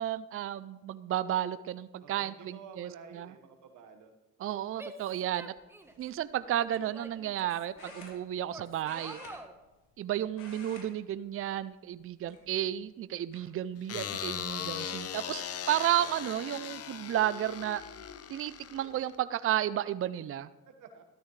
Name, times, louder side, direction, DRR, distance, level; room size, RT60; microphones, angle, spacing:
voice 1, 0.0-3.3 4.4-5.5 6.0-9.2 10.0-17.8 18.3-20.5, right 12 dB, 45° right, 15 dB, 0.5 m, -32 dB
voice 2, 2.0-4.1 12.2-12.7 16.0-16.1 20.7-21.0, right 5 dB, 80° right, 6 dB, 1.5 m, -51 dB
Female speech woman speaking / Yell, 4.8-6.1 6.6-8.1 8.5-9.5, right 1 dB, 10° right, 1.2 m, -48 dB
sound 1, 5.8-6.1 7.8-8.5 8.8-10.0 10.3-10.9 11.2-11.4 12.2-12.8 13.3-13.4 14.9-15.0 15.3-15.7, left 2 dB, 85° left, 3.1 m, -51 dB
sound 2, 13.9-19.2, left 8 dB, 55° left, 0.8 m, -39 dB
13.5 x 13.0 x 3.3 m, 1.0 s
cardioid pair, 90°, 30 cm